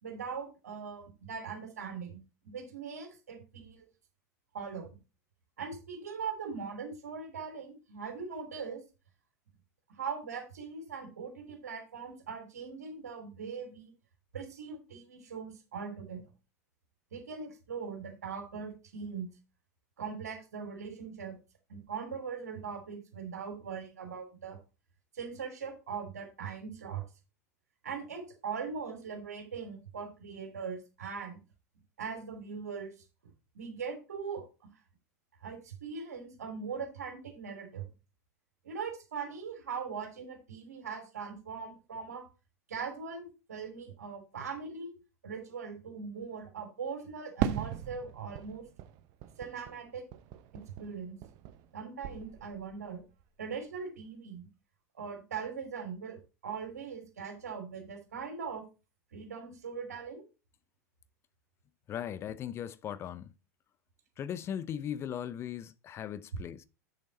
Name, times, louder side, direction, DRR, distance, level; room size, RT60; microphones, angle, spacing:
voice 1, 0.0-3.9 4.5-5.0 5.6-8.8 9.9-13.9 14.3-16.2 17.1-19.3 20.0-21.4 21.7-24.6 25.1-27.0 27.8-31.4 32.0-33.0 33.2-34.7 35.4-37.9 38.6-42.3 42.7-44.9 45.2-48.6 49.4-50.0 50.5-51.2 51.7-53.0 53.4-54.5 54.9-58.6 59.1-60.3, right 6 dB, 70° right, 3.1 m, -40 dB
Fireworks, 47.4-51.8 52.0-52.8, right 11 dB, 45° right, 1.0 m, -38 dB
voice 2, 61.9-63.3 64.2-66.6, left 9 dB, 30° left, 0.6 m, -38 dB
8.0 x 6.9 x 4.0 m
figure-of-eight pair, 85°, 9 cm